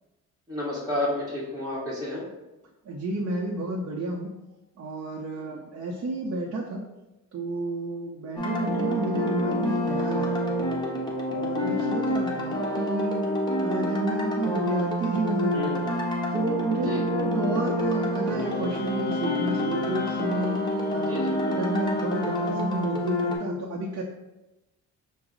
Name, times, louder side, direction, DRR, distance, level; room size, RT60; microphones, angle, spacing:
voice 1, 0.5-2.2 5.4-5.6 15.5-15.8 16.8-17.0 21.1-21.4, left 1 dB, 10° right, -7 dB, 1.1 m, -31 dB
voice 2, 2.8-4.3 4.8-6.8 7.3-10.6 11.3-13.3 13.6-15.7 16.3-24.0, right 2 dB, 50° right, -2 dB, 0.6 m, -31 dB
sound 1, 8.4-23.4, equal, 15° left, 0.8 m, -27 dB
Wind instrument woodwind instrument, 18.3-22.7, left 6 dB, 35° left, 0.4 m, -36 dB
5.9 x 2.0 x 3.8 m, 1.0 s
cardioid pair, 115°, 30 cm